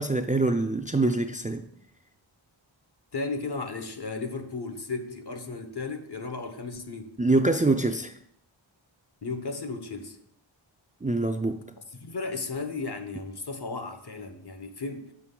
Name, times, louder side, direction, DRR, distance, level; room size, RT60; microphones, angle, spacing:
voice 1, 0.0-1.6 7.2-8.1 11.0-11.6, right 2 dB, 15° right, 0.4 m, -24 dB
voice 2, 3.1-7.1 9.2-10.2 11.9-15.1, left 3 dB, 55° left, 1.0 m, -35 dB
6.5 x 6.1 x 3.8 m
wide cardioid pair, 40°, 49 cm